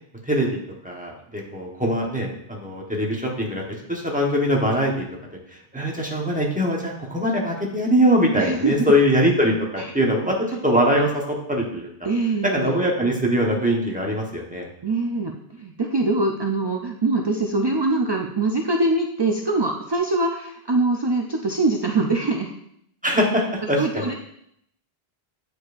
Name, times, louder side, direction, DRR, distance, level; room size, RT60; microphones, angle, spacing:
voice 1, 0.3-0.6 0.8-5.1 5.7-11.9 12.4-14.7 23.0-24.1, equal, 10° right, -2 dB, 1.0 m, -22 dB
voice 2, 8.4-8.9 12.0-12.8 14.8-22.5 23.8-24.1, right 2 dB, 40° right, 2 dB, 0.3 m, -23 dB
8.8 x 4.8 x 2.5 m, 0.72 s
omnidirectional pair, 1.1 m